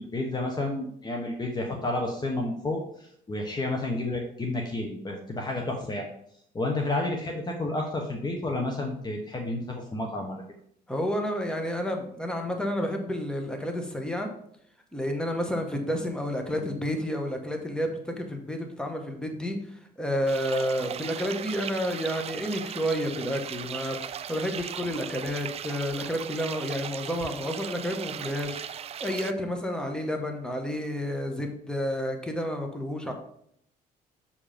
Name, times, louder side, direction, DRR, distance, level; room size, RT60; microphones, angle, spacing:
voice 1, 0.0-6.1 6.5-10.4, left 2 dB, 25° left, 2 dB, 1.0 m, -31 dB
voice 2, 10.9-14.3 14.9-33.1, equal, 5° left, 4 dB, 1.4 m, -30 dB
sound 1, 20.3-29.3, right 9 dB, 35° right, 0.4 m, -38 dB
7.1 x 4.9 x 5.1 m, 0.69 s
cardioid pair, 110°, 17 cm